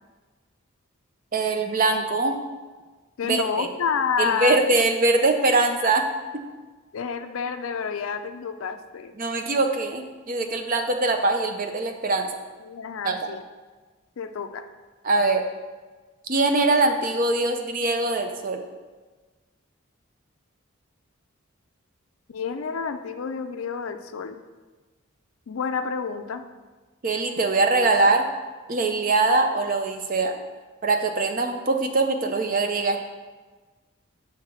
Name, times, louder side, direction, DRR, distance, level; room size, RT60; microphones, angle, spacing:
voice 1, 1.3-2.4 3.2-3.7 4.2-6.0 9.2-12.3 13.0-13.2 15.0-15.4 16.3-18.6 27.0-28.3 28.7-30.3 30.8-33.0, right 3 dB, 40° right, 5 dB, 0.5 m, -22 dB
voice 2, 3.2-4.6 5.4-5.5 6.9-9.1 12.6-13.4 14.2-14.6 22.3-24.4 25.5-26.4, left 6 dB, 75° left, 9 dB, 0.4 m, -29 dB
6.5 x 3.5 x 6.1 m, 1.3 s
head